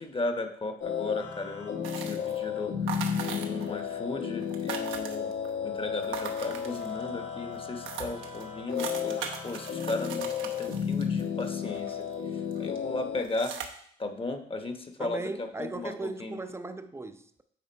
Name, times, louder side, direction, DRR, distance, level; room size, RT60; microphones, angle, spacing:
voice 1, 0.0-3.0 3.3-5.3 5.6-13.5 14.0-16.4, left 2 dB, 25° left, 6 dB, 0.9 m, -36 dB
sound 1, 0.8-13.2, left 7 dB, 75° left, 1.4 m, -33 dB
sound 2, 1.8-2.4 2.9-3.8 4.1-4.2 4.4-5.5 6.0-7.1 7.5-7.6 7.9-12.1 12.5-12.8 13.2-13.7, right 7 dB, 80° right, 0.9 m, -39 dB
voice 2, 15.0-17.4, right 2 dB, 15° right, 9 dB, 0.5 m, -37 dB
9.5 x 3.7 x 4.5 m, 0.66 s
cardioid pair, 90°, 20 cm